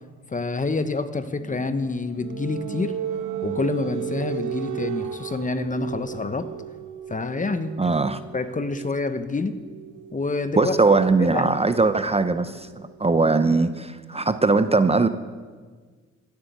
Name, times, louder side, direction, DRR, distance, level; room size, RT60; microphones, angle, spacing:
voice 1, 0.3-3.0 3.4-6.5 7.1-7.9 8.3-9.5 10.1-10.8 11.2-11.5, left 3 dB, 25° left, 11 dB, 1.0 m, -27 dB
sound 1, 1.4-12.9, right 10 dB, 75° right, 1.1 m, -35 dB
voice 2, 7.8-8.2 10.6-15.1, right 3 dB, 20° right, 11 dB, 0.7 m, -20 dB
15.0 x 8.4 x 8.0 m, 1.5 s
cardioid pair, 70°, 30 cm